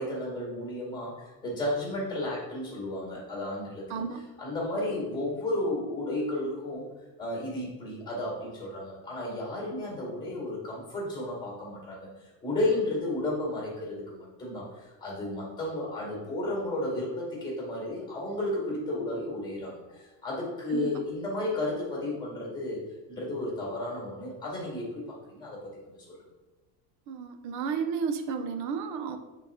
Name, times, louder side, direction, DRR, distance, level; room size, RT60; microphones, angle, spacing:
voice 1, 0.0-4.0 4.4-6.9 7.2-25.7 26.1-26.2, left 1 dB, 10° left, -3 dB, 2.2 m, -33 dB
voice 2, 3.9-4.2 20.7-20.9 27.1-29.2, right 6 dB, 40° right, 7 dB, 0.6 m, -32 dB
7.8 x 4.1 x 3.6 m, 1.2 s
cardioid pair, 175°, 44 cm